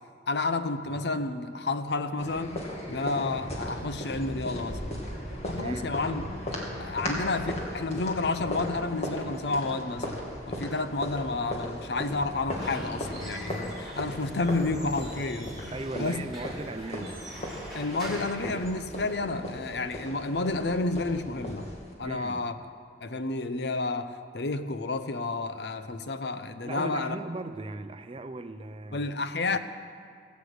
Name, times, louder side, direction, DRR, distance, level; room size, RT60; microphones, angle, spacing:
voice 1, 0.3-4.9 5.4-6.2 6.8-16.2 17.7-21.7 22.0-22.6 23.0-27.1 28.9-29.6, left 3 dB, 65° left, 0.7 m, -30 dB
sound 1, 2.2-21.9, left 1 dB, 35° left, 2.3 m, -37 dB
voice 2, 5.6-6.0 15.7-17.3 22.0-22.5 26.6-29.1 29.5-29.6, right 2 dB, 30° right, 0.6 m, -38 dB
Squeak / Wood, 12.3-19.3, right 1 dB, ahead, 4.2 m, -44 dB
18.0 x 8.2 x 8.0 m
head